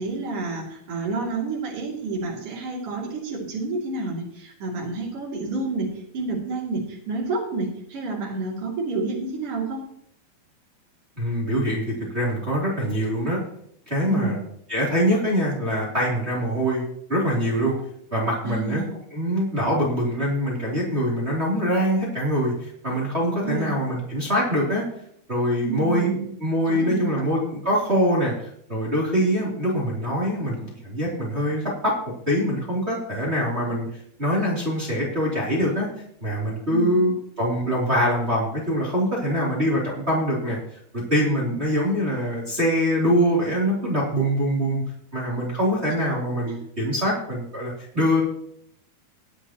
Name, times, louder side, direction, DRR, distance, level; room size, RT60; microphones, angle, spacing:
voice 1, 0.0-9.8 14.1-14.3 18.4-18.9 23.4-23.7 25.6-26.2 26.7-27.2 36.7-37.0 41.5-41.6 46.5-46.6, right 3 dB, 40° right, -2 dB, 3.4 m, -29 dB
voice 2, 11.2-13.4 13.9-14.4 14.7-16.8 17.1-17.7 18.1-18.8 19.1-24.8 25.3-31.9 32.3-33.9 34.2-35.9 36.2-40.8 41.1-44.8 45.1-48.2, equal, 15° right, -5 dB, 3.0 m, -24 dB
21.0 x 8.0 x 3.1 m, 0.69 s
omnidirectional pair, 4.6 m